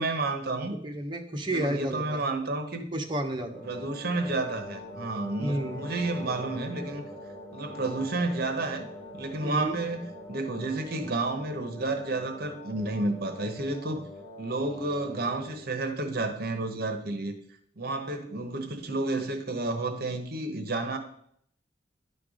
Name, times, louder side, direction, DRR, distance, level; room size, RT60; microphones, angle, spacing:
voice 1, 0.0-0.8 1.5-2.9 3.6-7.1 7.5-8.9 9.1-14.0 14.4-17.4 17.8-21.0, right 2 dB, 55° right, 6 dB, 1.0 m, -31 dB
voice 2, 0.7-2.2 2.9-3.7 5.4-5.9 9.4-9.8, right 1 dB, 25° right, 2 dB, 1.1 m, -31 dB
sound 1, 3.5-15.7, left 1 dB, 15° left, 1.7 m, -43 dB
11.0 x 4.6 x 5.0 m, 0.67 s
head